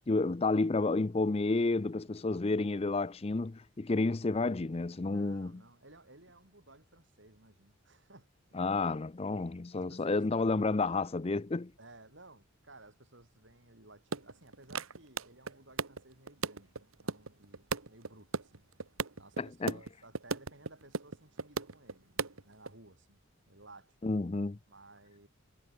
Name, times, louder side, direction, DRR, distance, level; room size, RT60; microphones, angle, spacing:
voice 1, 0.1-5.6 8.5-11.7 19.4-19.8 24.0-24.6, left 3 dB, 30° left, 0.5 m, -30 dB
voice 2, 5.0-8.7 9.8-10.2 11.8-18.7 19.2-23.2 23.5-24.0 24.7-25.3, right 2 dB, 60° right, 7.5 m, -57 dB
sound 1, 14.1-19.4 19.7-19.9 20.1-21.9 22.2-22.7, right 4 dB, 85° right, 1.5 m, -35 dB
head